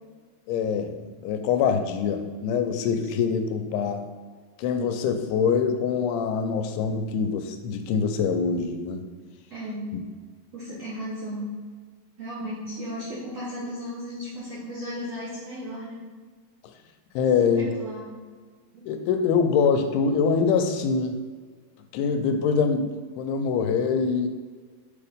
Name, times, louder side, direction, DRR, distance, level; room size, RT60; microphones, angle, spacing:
voice 1, 0.5-4.1 4.6-9.1 17.2-17.7 18.9-21.2 21.9-24.3, left 6 dB, 85° left, 6 dB, 2.6 m, -24 dB
voice 2, 9.5-10.0 10.5-11.5 12.2-16.1 17.5-18.0 18.7-18.9, equal, 70° right, -8 dB, 1.5 m, -35 dB
6.8 x 2.8 x 5.0 m, 1.5 s
omnidirectional pair, 4.6 m